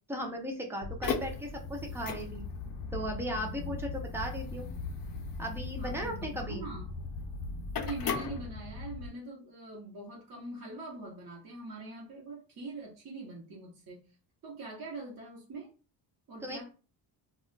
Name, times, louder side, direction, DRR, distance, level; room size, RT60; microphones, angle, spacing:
voice 1, 0.1-2.5 2.9-4.7 5.4-6.7 16.4-16.7, equal, 5° right, 1 dB, 0.5 m, -37 dB
sound 1, 0.8-9.1, left 4 dB, 50° left, 0.5 m, -37 dB
voice 2, 5.8-6.9 7.8-14.0 14.4-15.7 16.3-16.7, right 2 dB, 45° right, -4 dB, 0.9 m, -43 dB
2.3 x 2.2 x 3.7 m, 0.35 s
cardioid pair, 150°, 47 cm